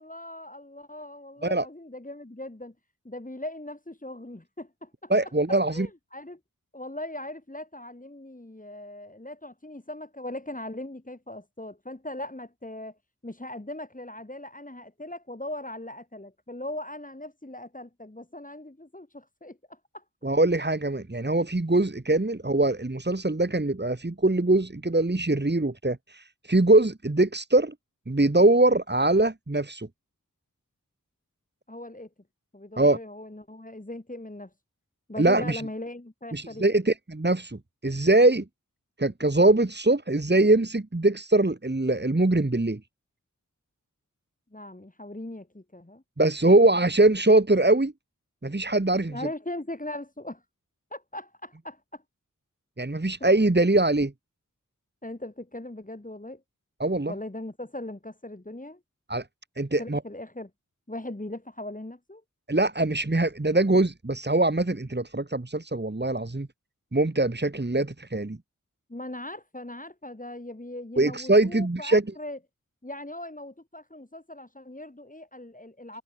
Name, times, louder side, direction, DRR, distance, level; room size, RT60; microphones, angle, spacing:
voice 1, 0.0-2.7 3.1-5.1 5.5-6.4 6.7-13.0 13.2-20.0 31.7-32.1 32.5-34.5 35.1-36.7 44.5-46.0 49.1-50.4 50.9-52.0 55.0-56.4 57.1-58.8 59.8-60.5 60.9-62.2 68.9-72.4 72.8-76.0, left 1 dB, 25° left, 3.5 m, -39 dB
voice 2, 5.1-5.9 20.2-27.7 28.1-29.9 32.8-33.0 35.2-35.6 36.3-38.4 39.0-42.8 46.2-47.9 48.4-49.3 52.8-54.1 56.8-57.1 59.1-59.2 59.6-60.0 62.5-66.5 66.9-68.4 71.0-72.0, right 2 dB, 30° right, 2.6 m, -22 dB
wide cardioid pair, 50°, 33 cm